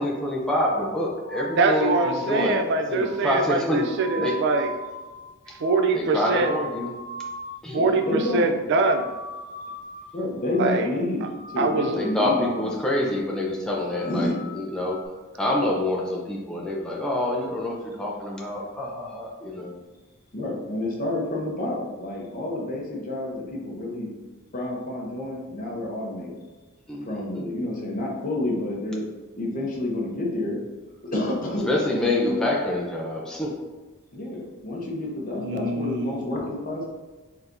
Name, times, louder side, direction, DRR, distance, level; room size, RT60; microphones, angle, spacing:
voice 1, 0.0-2.6 2.9-4.4 5.9-6.9 7.6-7.8 10.6-10.7 11.9-15.0 15.4-19.7 26.9-27.5 31.7-33.5, left 1 dB, 5° left, -3 dB, 0.5 m, -27 dB
sound 1, 0.7-7.7 7.9-8.4 8.7-10.2 10.4-10.9 11.2-12.7 13.0-13.4 13.7-15.1, equal, 55° left, 1.4 m, -38 dB
voice 2, 1.6-4.7 5.6-6.5 7.7-9.0 10.6-10.9 11.6-11.9 35.4-36.3, right 3 dB, 55° right, 7 dB, 0.3 m, -23 dB
voice 3, 7.7-8.6 10.1-12.7 13.8-14.4 20.3-24.1 24.5-26.4 27.1-29.0 29.4-30.6 31.0-32.5 34.1-36.9, left 1 dB, 40° left, -2 dB, 0.9 m, -29 dB
4.5 x 3.4 x 2.6 m, 1.2 s
head